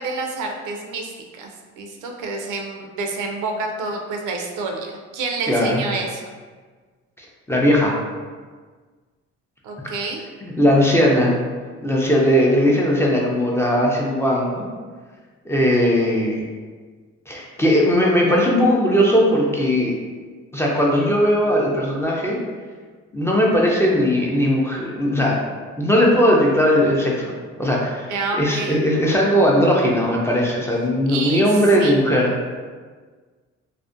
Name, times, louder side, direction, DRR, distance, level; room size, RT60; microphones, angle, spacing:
voice 1, 0.0-1.5 1.8-6.2 9.6-10.2 28.1-28.8 31.1-31.5 31.8-32.0, right 3 dB, 85° right, 2 dB, 0.5 m, -28 dB
voice 2, 5.5-5.8 7.5-7.9 10.4-11.4 11.8-14.7 15.5-16.4 17.3-19.9 20.5-22.4 23.1-25.4 25.8-27.3 27.6-32.3, equal, 10° left, -3 dB, 0.4 m, -18 dB
2.4 x 2.1 x 2.5 m, 1.5 s
cardioid pair, 90°, 30 cm